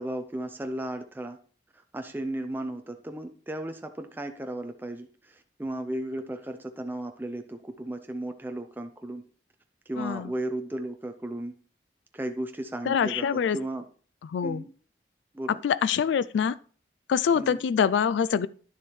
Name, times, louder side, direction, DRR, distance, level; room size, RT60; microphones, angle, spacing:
voice 1, 0.0-1.4 1.9-9.2 9.9-11.5 12.1-13.8 14.4-14.7 15.3-15.6 17.3-17.6, right 1 dB, 10° right, 0.5 m, -35 dB
voice 2, 10.0-10.3 12.9-13.6 14.2-14.6 15.6-16.6 17.1-18.5, left 7 dB, 75° left, 0.3 m, -25 dB
10.5 x 7.0 x 3.2 m
head